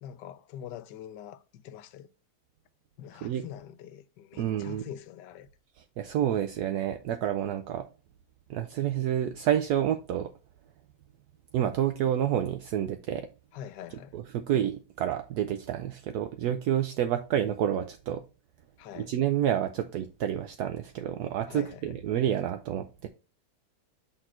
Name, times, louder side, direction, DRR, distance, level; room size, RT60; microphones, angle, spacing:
voice 1, 0.0-2.1 3.0-5.5 13.5-14.2 18.8-19.1 21.5-22.0, left 10 dB, 85° left, 1.2 m, -44 dB
voice 2, 4.4-4.9 6.0-7.8 8.5-10.3 11.5-13.3 14.1-18.2 18.9-23.1, right 10 dB, 75° right, 1.1 m, -29 dB
6.2 x 3.9 x 4.3 m
omnidirectional pair, 1.8 m